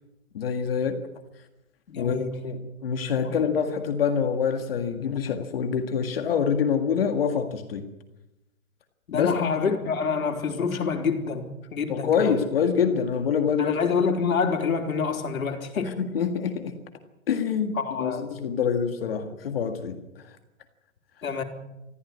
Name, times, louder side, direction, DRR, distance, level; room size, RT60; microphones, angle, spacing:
voice 1, 0.3-1.0 2.0-7.8 9.1-9.3 11.9-13.8 15.9-16.8 17.3-20.4, left 7 dB, 45° left, 6 dB, 1.9 m, -26 dB
voice 2, 1.9-2.4 3.2-3.4 9.1-12.4 13.6-16.0 17.8-18.3 21.2-21.4, left 5 dB, 85° left, 3 dB, 3.6 m, -27 dB
21.5 x 14.5 x 9.6 m, 0.96 s
hypercardioid pair, 175°, 41 cm